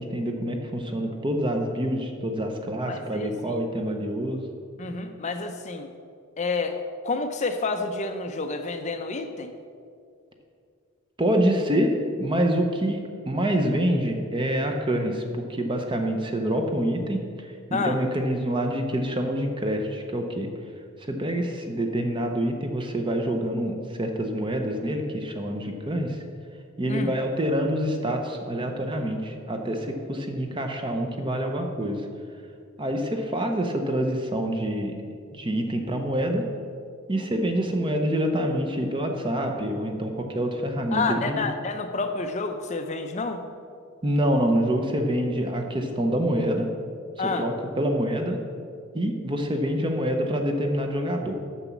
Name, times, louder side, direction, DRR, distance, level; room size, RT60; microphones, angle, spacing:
voice 1, 0.0-4.4 11.2-17.3 17.7-20.5 21.1-26.2 26.8-32.1 32.8-35.0 35.3-36.5 37.1-41.5 44.0-46.7 47.2-48.4 48.9-51.3, equal, 20° right, 4 dB, 0.6 m, -26 dB
voice 2, 2.9-3.3 4.8-5.9 6.4-6.8 7.0-9.5 17.7-18.0 26.9-27.1 40.9-43.4 47.2-47.4, left 3 dB, 30° left, 7 dB, 0.5 m, -29 dB
6.8 x 6.0 x 7.2 m, 2.3 s
head